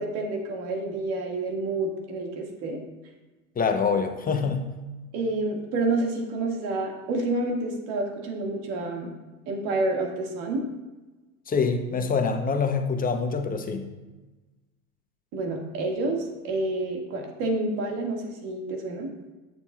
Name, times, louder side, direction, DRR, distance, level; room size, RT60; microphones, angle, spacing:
voice 1, 0.0-2.8 5.1-9.1 9.5-10.6 15.3-19.1, right 2 dB, 60° right, 1 dB, 2.0 m, -29 dB
voice 2, 3.6-4.7 11.5-13.9, left 5 dB, 20° left, 6 dB, 0.8 m, -25 dB
9.4 x 7.0 x 2.4 m, 1.2 s
hypercardioid pair, 90°, 42 cm